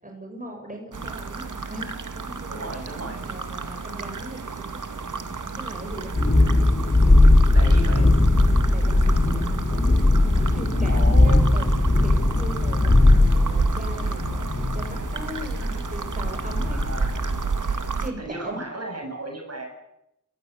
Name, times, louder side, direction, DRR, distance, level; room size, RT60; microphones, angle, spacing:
voice 1, 0.0-6.2 8.7-9.9 10.4-16.8 17.6-18.7, right 1 dB, 25° right, 2 dB, 6.9 m, -39 dB
sound 1, 0.9-18.1, right 4 dB, 70° right, 2.1 m, -32 dB
voice 2, 2.5-3.2 6.9-7.1 7.5-8.1 10.9-11.5 15.5-15.8 16.7-17.1 18.2-19.7, right 1 dB, 50° right, 3 dB, 7.8 m, -35 dB
Thunderstorm, 5.9-17.5, left 2 dB, 30° left, 3.9 m, -19 dB
30.0 x 15.0 x 8.1 m, 0.81 s
cardioid pair, 50°, 32 cm